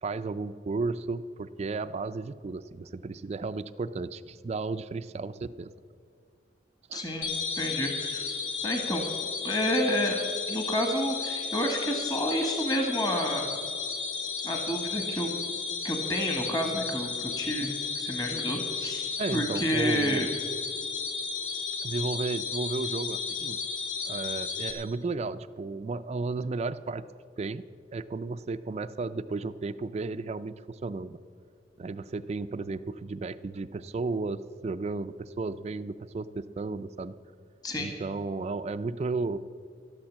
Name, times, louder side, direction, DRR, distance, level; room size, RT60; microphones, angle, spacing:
voice 1, 0.0-5.7 6.9-7.0 19.2-20.3 21.8-23.6 24.1-27.0 27.4-27.6 27.9-31.2 31.8-37.1 37.8-39.4, right 3 dB, 35° right, 11 dB, 0.3 m, -33 dB
voice 2, 6.9-7.3 7.5-9.0 9.4-10.2 10.5-13.5 14.4-15.3 15.8-20.3 37.6-37.9, equal, 20° left, 3 dB, 1.3 m, -30 dB
sound 1, 7.2-24.7, left 5 dB, 75° left, 2.7 m, -33 dB
12.5 x 11.5 x 7.3 m, 2.3 s
head